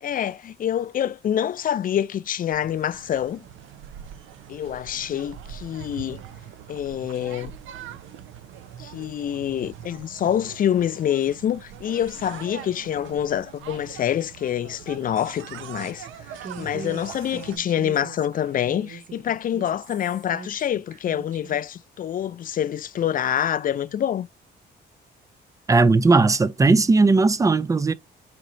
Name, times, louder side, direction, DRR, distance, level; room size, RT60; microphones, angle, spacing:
voice 1, 0.0-3.4 4.5-6.2 6.7-7.5 8.8-16.1 16.6-24.3, left 10 dB, 45° left, 0.4 m, -26 dB
sound 1, 2.5-17.6, right 9 dB, 80° right, 0.6 m, -42 dB
Human voice, 16.4-21.6, right 4 dB, 40° right, 0.8 m, -41 dB
voice 2, 25.7-27.9, right 3 dB, 15° right, 0.4 m, -17 dB
4.3 x 2.8 x 3.7 m
cardioid pair, 90°, 20 cm